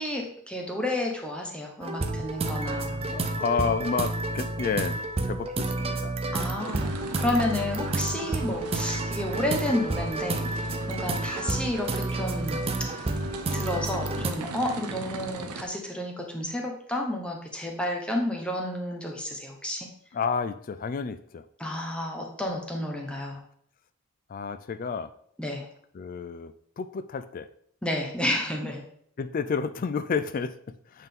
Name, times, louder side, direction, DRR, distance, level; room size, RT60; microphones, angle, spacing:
voice 1, 0.0-3.4 6.3-13.1 13.5-19.9 21.6-23.4 25.4-25.7 27.8-28.8, left 1 dB, 5° left, 0 dB, 0.9 m, -31 dB
sound 1, 1.8-14.3, right 2 dB, 25° right, 0.4 m, -30 dB
voice 2, 2.7-5.0 5.2-6.3 20.1-21.4 24.3-25.1 25.9-27.5 29.2-31.1, left 5 dB, 40° left, 12 dB, 0.3 m, -31 dB
sound 2, 6.6-15.6, right 4 dB, 85° right, 0.7 m, -40 dB
8.1 x 3.7 x 3.6 m, 0.66 s
head